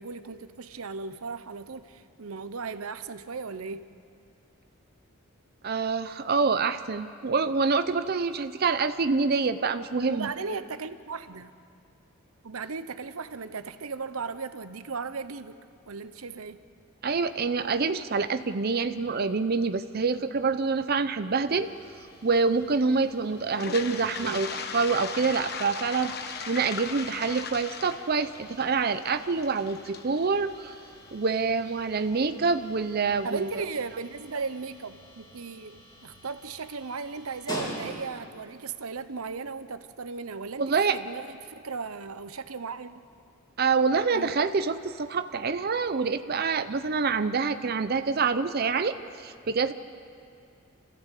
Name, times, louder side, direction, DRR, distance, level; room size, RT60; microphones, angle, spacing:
voice 1, 0.0-3.9 10.1-11.5 12.4-15.6 15.9-16.6 24.2-24.5 33.2-43.0 44.1-44.4, right 4 dB, 85° right, 12 dB, 0.9 m, -36 dB
voice 2, 5.6-10.3 17.0-21.7 22.2-24.5 24.7-26.1 26.5-30.8 31.1-33.5 40.6-41.0 43.6-49.7, right 4 dB, 45° right, 10 dB, 0.6 m, -26 dB
sound 1, 21.5-38.4, equal, 20° left, 3.2 m, -47 dB
Toilet flush, 23.5-31.4, left 6 dB, 50° left, 1.3 m, -38 dB
27.5 x 14.5 x 8.4 m, 2.5 s
head